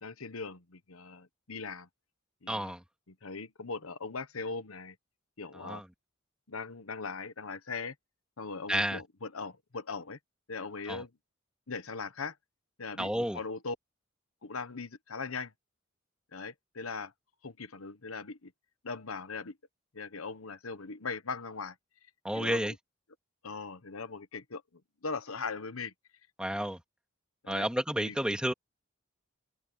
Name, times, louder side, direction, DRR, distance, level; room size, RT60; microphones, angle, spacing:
voice 1, 0.0-1.9 2.4-2.7 3.1-4.9 5.4-5.8 6.5-7.9 8.4-10.2 10.5-11.1 11.7-12.4 12.8-13.7 14.4-15.5 16.3-17.1 17.4-18.5 18.8-19.6 19.9-21.8 22.3-22.8 23.4-24.6 25.0-25.9 26.5-26.6 27.4-27.7 28.0-28.2, left 4 dB, 90° left, 1.2 m, -39 dB
voice 2, 2.5-2.8 5.6-5.8 8.7-9.0 10.9-11.0 13.0-13.4 22.2-22.7 26.4-26.8 27.5-28.5, equal, 5° right, 2.5 m, -31 dB
head